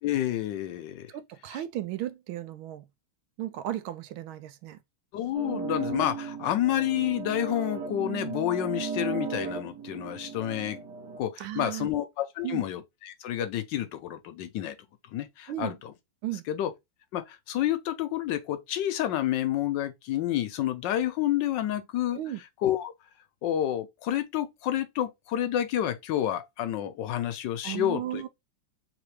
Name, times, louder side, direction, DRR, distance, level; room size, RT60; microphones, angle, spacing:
voice 1, 0.0-1.1 1.5-1.6 5.1-10.8 11.2-14.8 15.1-15.9 16.5-16.7 17.1-22.2 22.6-22.9 23.4-28.2, left 12 dB, 75° left, 1.2 m, -29 dB
voice 2, 1.1-2.8 3.4-4.8 11.4-11.9 12.4-12.7 15.5-15.7 16.2-16.4 22.1-22.4 27.6-28.3, right 13 dB, 85° right, 1.5 m, -35 dB
sound 1, 5.3-11.2, right 5 dB, 65° right, 1.6 m, -35 dB
4.0 x 3.3 x 3.1 m
omnidirectional pair, 2.2 m